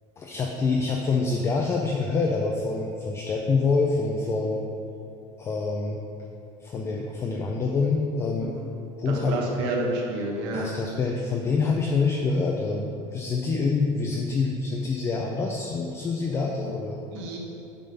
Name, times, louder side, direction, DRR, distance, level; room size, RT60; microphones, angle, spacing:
voice 1, 0.2-4.6 5.4-6.0 6.6-8.5 9.0-9.4 10.5-17.0, left 4 dB, 15° left, 0 dB, 0.4 m, -26 dB
voice 2, 9.0-10.7 17.1-17.4, right 2 dB, 70° right, -1 dB, 1.5 m, -29 dB
8.6 x 3.7 x 5.6 m, 2.7 s
cardioid pair, 170°, 16 cm